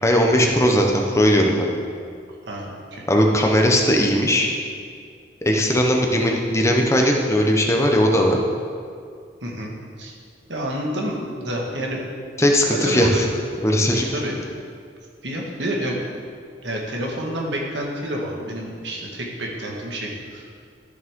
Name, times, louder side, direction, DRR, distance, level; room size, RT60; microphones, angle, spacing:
voice 1, 0.0-1.7 3.1-4.5 5.4-8.4 12.4-13.3 13.6-14.1, equal, 15° left, 1 dB, 0.9 m, -18 dB
voice 2, 2.5-3.0 9.4-10.1 10.5-12.0 12.7-13.3 14.1-14.5 15.2-16.0 16.6-20.5, equal, 85° right, -2 dB, 1.7 m, -29 dB
13.5 x 6.2 x 3.7 m, 2.2 s
head